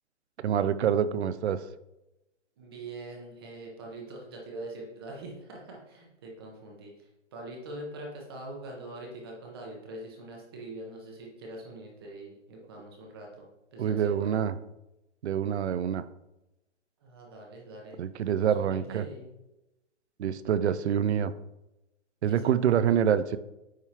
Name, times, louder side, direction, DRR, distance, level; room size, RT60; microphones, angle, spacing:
voice 1, 0.4-1.6 13.8-14.5 15.2-16.0 18.0-19.1 20.2-21.3 22.2-23.4, right 8 dB, 65° right, 14 dB, 0.5 m, -26 dB
voice 2, 2.6-14.3 17.0-18.0 18.3-19.3 22.2-22.5, right 2 dB, 20° right, -1 dB, 0.8 m, -43 dB
9.5 x 3.5 x 2.9 m, 0.93 s
hypercardioid pair, 165°, 37 cm